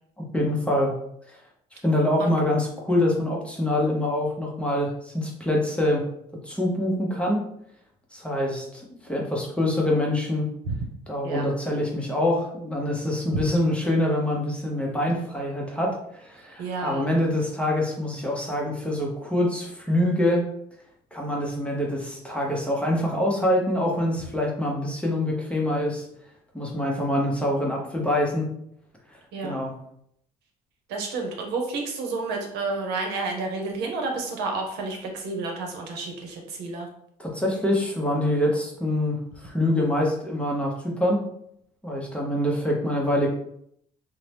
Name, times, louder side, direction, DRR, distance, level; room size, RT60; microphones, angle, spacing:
voice 1, 0.3-0.9 1.3-1.4 1.8-6.0 6.4-7.4 8.1-10.5 11.1-20.5 21.1-26.0 26.5-28.5 29.4-29.7 37.2-41.2 41.8-43.3, left 1 dB, 5° left, -2 dB, 0.7 m, -25 dB
voice 2, 16.6-17.1 29.3-29.5 30.9-36.9, right 3 dB, 85° right, 2 dB, 0.7 m, -30 dB
2.7 x 2.1 x 3.2 m, 0.71 s
cardioid pair, 110°, 17 cm